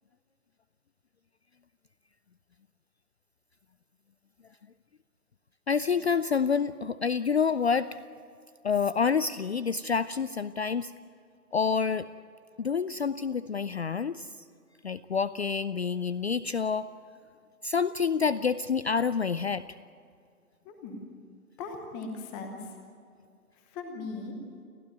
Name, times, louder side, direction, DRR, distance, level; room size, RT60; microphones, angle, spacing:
voice 1, 5.7-7.9 8.6-10.9 11.5-12.1 12.6-14.3 14.8-16.9 17.6-19.6, left 6 dB, 45° left, 15 dB, 0.5 m, -28 dB
voice 2, 20.6-21.1 21.6-22.6 23.7-24.3, left 3 dB, 5° left, 5 dB, 0.9 m, -38 dB
29.5 x 12.5 x 9.4 m, 2.3 s
hypercardioid pair, 160°, 45 cm